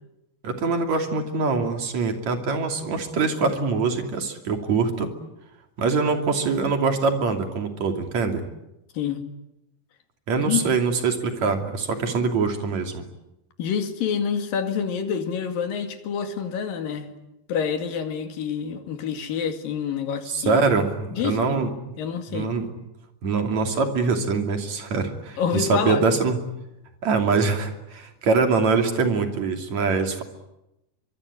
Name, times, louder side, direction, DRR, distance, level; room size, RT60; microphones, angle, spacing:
voice 1, 0.4-5.1 5.8-8.4 10.3-13.0 20.3-21.7 22.3-22.7 23.2-26.4 27.0-30.2, right 4 dB, 50° right, 5 dB, 3.9 m, -23 dB
voice 2, 13.6-17.1 17.5-20.6 21.1-21.7 22.0-22.5 25.4-26.0, left 7 dB, 70° left, 6 dB, 3.9 m, -27 dB
24.5 x 24.0 x 9.8 m, 0.91 s
omnidirectional pair, 4.2 m